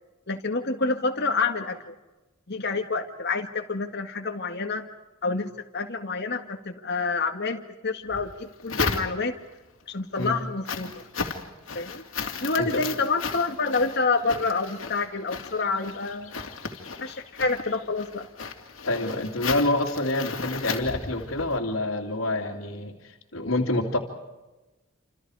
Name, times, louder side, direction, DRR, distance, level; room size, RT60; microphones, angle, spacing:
voice 1, 0.3-1.9 2.5-4.9 5.2-9.3 9.9-11.0 11.7-12.1 12.4-16.3 17.0-18.3, left 4 dB, 55° left, 4 dB, 2.0 m, -28 dB
sound 1, 8.1-9.5 10.0-21.6, left 4 dB, 70° left, 2.9 m, -35 dB
voice 2, 18.9-22.9 23.3-24.0, left 2 dB, 85° left, -3 dB, 2.8 m, -27 dB
28.5 x 27.5 x 4.9 m, 1.1 s
head